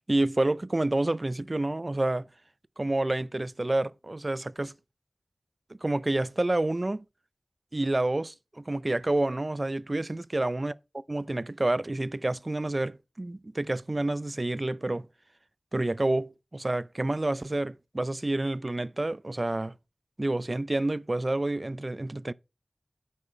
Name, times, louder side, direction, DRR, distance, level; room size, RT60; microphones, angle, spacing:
voice 1, 0.1-2.3 2.8-4.7 5.8-7.0 7.7-10.7 11.1-15.1 15.7-19.7 20.2-22.3, right 2 dB, 45° right, 0.4 m, -28 dB
8.4 x 5.0 x 4.4 m
wide cardioid pair, 45°, 0 cm